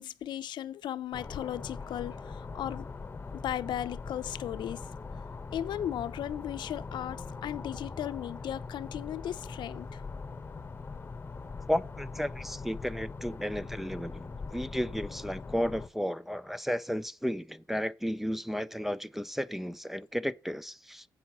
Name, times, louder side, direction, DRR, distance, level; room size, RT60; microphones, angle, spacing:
voice 1, 0.0-2.9 3.3-4.9 5.5-10.0, left 11 dB, 80° left, 0.6 m, -36 dB
sound 1, 1.1-15.9, left 4 dB, 25° left, 1.0 m, -42 dB
voice 2, 11.7-21.0, equal, 5° right, 0.4 m, -33 dB
8.4 x 6.1 x 5.6 m
cardioid pair, 120°, 8 cm